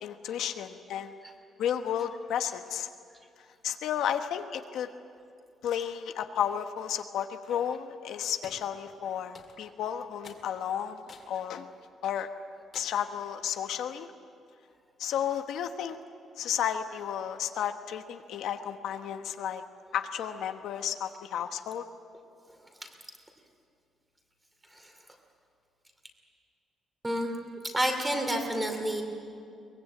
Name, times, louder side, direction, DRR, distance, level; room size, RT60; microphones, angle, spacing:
voice 1, 0.0-1.1 1.6-2.9 3.6-4.9 5.6-11.7 12.0-12.3 12.7-14.1 15.0-16.0 16.4-19.6 19.9-21.8, left 9 dB, 70° left, 7 dB, 1.1 m, -32 dB
sound 1, 8.4-8.6 9.3-9.8 10.2-10.5 11.1-11.3 11.8-11.9 12.7-13.1, left 5 dB, 35° left, 2.4 m, -49 dB
voice 2, 27.6-29.0, equal, 10° right, 4 dB, 2.6 m, -29 dB
23.0 x 21.0 x 8.6 m, 2.4 s
cardioid pair, 170°, 0 cm